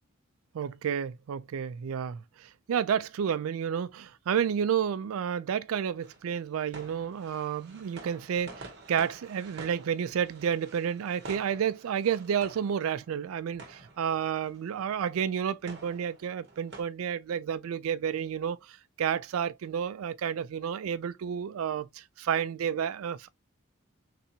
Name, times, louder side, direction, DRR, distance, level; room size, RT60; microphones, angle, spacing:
voice 1, 0.5-23.3, right 8 dB, 85° right, 0.3 m, -31 dB
sound 1, 6.0-16.8, right 2 dB, 50° right, 0.9 m, -49 dB
3.3 x 2.7 x 2.8 m
head